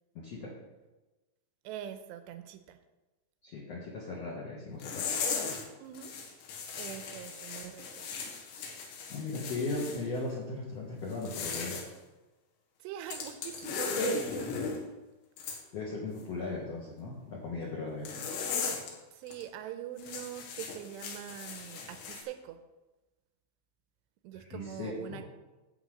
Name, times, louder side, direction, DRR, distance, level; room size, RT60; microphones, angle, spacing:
voice 1, 0.1-0.5 3.4-5.0 9.1-11.8 15.7-18.1 24.4-25.2, left 3 dB, 55° left, -5 dB, 1.9 m, -37 dB
voice 2, 1.6-2.8 5.8-6.1 6.8-8.1 12.8-14.5 19.1-22.6 24.2-25.2, right 11 dB, 80° right, 8 dB, 2.6 m, -43 dB
sound 1, 4.8-5.7 5.9-10.0 11.1-11.9 13.1-14.8 15.4-15.6 18.1-18.9 19.3-19.4 20.0-22.2, left 5 dB, 75° left, 3.7 m, -37 dB
11.0 x 4.7 x 7.9 m, 1.1 s
omnidirectional pair, 5.5 m